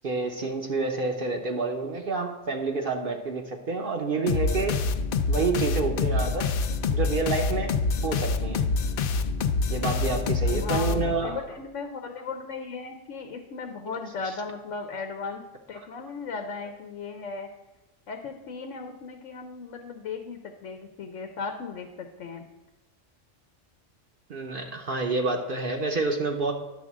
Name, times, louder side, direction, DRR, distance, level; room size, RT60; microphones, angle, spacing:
voice 1, 0.0-4.8 5.3-6.5 6.9-7.7 8.0-8.7 9.7-11.4 24.3-26.5, right 3 dB, 50° right, 2 dB, 0.8 m, -28 dB
sound 1, 4.3-11.4, left 4 dB, 60° left, 0.6 m, -26 dB
voice 2, 10.4-15.4 15.7-17.5 18.1-22.5, left 4 dB, 85° left, 5 dB, 1.1 m, -36 dB
10.5 x 3.7 x 7.2 m, 1.1 s
omnidirectional pair, 1.2 m